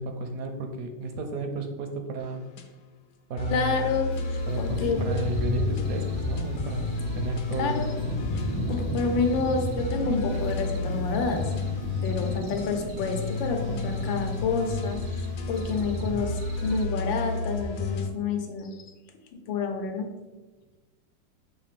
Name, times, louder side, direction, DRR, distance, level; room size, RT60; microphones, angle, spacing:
voice 1, 0.0-2.4 3.3-3.8 4.5-6.8 7.2-8.2, right 3 dB, 65° right, 5 dB, 0.9 m, -33 dB
sound 1, 2.2-2.6 3.4-18.1, left 4 dB, 65° left, 0.9 m, -32 dB
voice 2, 3.5-5.0 7.6-8.0 8.7-11.4 12.0-18.7 19.5-20.1, left 5 dB, 85° left, 4 dB, 1.6 m, -29 dB
sound 2, 4.1-16.9, right 6 dB, 80° right, 1.3 m, -41 dB
Thunder, 4.5-16.1, right 1 dB, 30° left, 0.5 m, -36 dB
7.2 x 2.8 x 5.1 m, 1.2 s
omnidirectional pair, 2.0 m